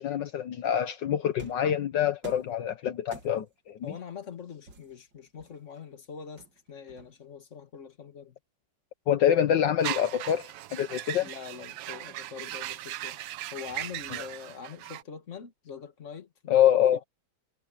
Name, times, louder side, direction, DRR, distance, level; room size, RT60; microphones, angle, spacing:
voice 1, 0.0-3.9 9.1-11.3 16.5-17.0, left 10 dB, 70° left, 1.6 m, -26 dB
sound 1, 1.4-1.7 2.2-2.6 3.1-3.6 4.7-5.8 6.4-7.4, right 4 dB, 65° right, 3.2 m, -50 dB
voice 2, 3.8-8.4 11.2-16.7, left 6 dB, 40° left, 2.0 m, -44 dB
sound 2, 9.8-15.0, right 14 dB, 90° right, 1.4 m, -38 dB
omnidirectional pair, 2.1 m